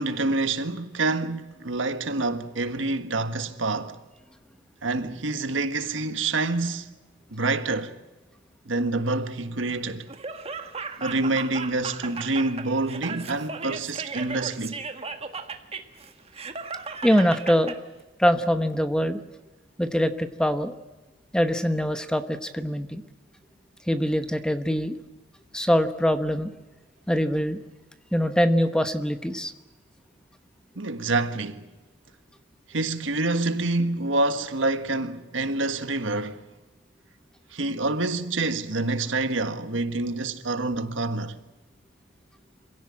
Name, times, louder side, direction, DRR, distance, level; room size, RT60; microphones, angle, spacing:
voice 1, 0.0-4.0 4.8-6.9 7.3-7.9 8.7-10.1 11.0-14.8 30.8-31.7 32.7-36.4 37.5-41.4, right 2 dB, 70° right, 1.6 m, -27 dB
Laughter, 10.1-17.8, right 4 dB, 30° right, 1.6 m, -36 dB
voice 2, 17.0-17.7 18.2-19.2 19.8-20.7 21.3-23.0 23.9-24.9 25.5-26.5 27.1-27.6 28.1-29.5, equal, 5° left, 1.0 m, -23 dB
26.0 x 16.5 x 8.7 m
head